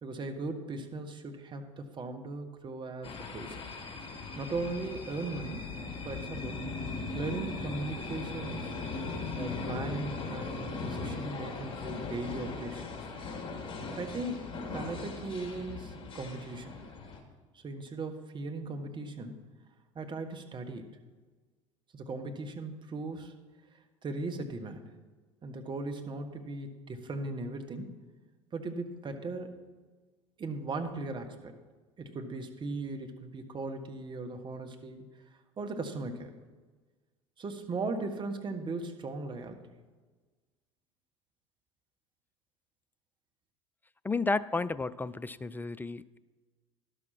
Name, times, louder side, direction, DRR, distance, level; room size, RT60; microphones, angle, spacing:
voice 1, 0.0-3.6 4.4-5.7 6.0-6.6 7.1-8.7 9.4-13.1 13.9-16.7 17.5-19.4 19.9-20.9 21.9-23.3 24.0-24.9 25.4-28.0 28.5-29.6 30.4-31.5 32.0-35.0 35.6-36.3 37.4-39.6, right 3 dB, 30° right, 5 dB, 1.4 m, -38 dB
sound 1, 3.0-17.2, left 4 dB, 35° left, 2.2 m, -39 dB
voice 2, 44.0-46.2, left 3 dB, 10° left, 15 dB, 0.3 m, -32 dB
11.5 x 6.3 x 5.9 m, 1.4 s
hypercardioid pair, 70°, 16 cm